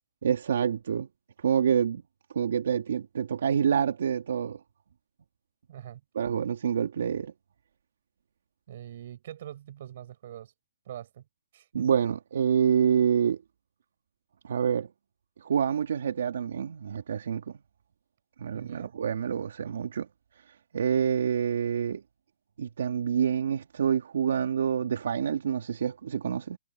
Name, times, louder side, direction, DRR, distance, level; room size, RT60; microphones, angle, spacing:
voice 1, 0.2-1.1 1.4-2.0 2.3-4.6 6.1-7.3 11.7-13.4 14.4-14.9 15.4-17.5 18.4-20.1 20.5-22.0 22.6-26.6, right 8 dB, 80° right, 2.4 m, -27 dB
voice 2, 5.7-6.0 8.7-10.5 10.9-11.2 11.5-11.9 18.5-18.9, right 11 dB, 60° right, 7.3 m, -43 dB
hypercardioid pair, 150°, 0 cm